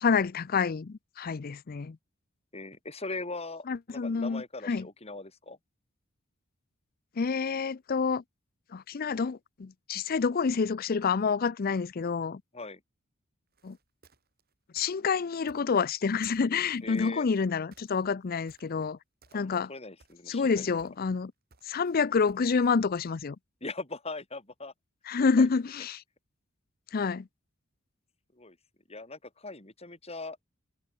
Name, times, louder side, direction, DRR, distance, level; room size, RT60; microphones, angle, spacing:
voice 1, 0.0-2.0 3.7-4.9 7.2-8.2 8.7-12.4 13.6-13.8 14.7-19.0 19.3-19.7 20.3-21.3 21.7-23.4 25.1-26.0 26.9-27.3, left 5 dB, 45° left, 0.5 m, -28 dB
voice 2, 2.5-5.6 12.5-12.8 16.8-17.3 19.3-20.7 23.6-24.7 25.2-25.5 28.3-28.6 28.9-30.4, left 3 dB, 30° left, 4.8 m, -40 dB
sound 1, 13.5-16.0 16.2-18.9 19.2-19.7 20.0-22.8, right 4 dB, 50° right, 7.0 m, -62 dB
head